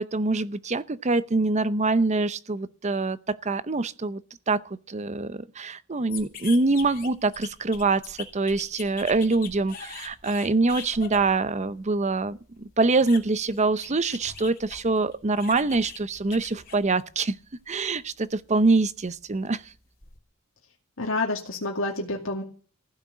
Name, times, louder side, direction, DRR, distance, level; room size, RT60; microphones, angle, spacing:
voice 1, 0.0-4.2 4.5-17.4 17.7-19.6, right 3 dB, 35° right, 0.7 m, -25 dB
sound 1, 6.1-17.4 17.8-20.2, left 6 dB, 45° left, 3.0 m, -43 dB
voice 2, 21.0-22.4, left 2 dB, 65° left, 2.4 m, -28 dB
15.5 x 6.6 x 9.5 m
head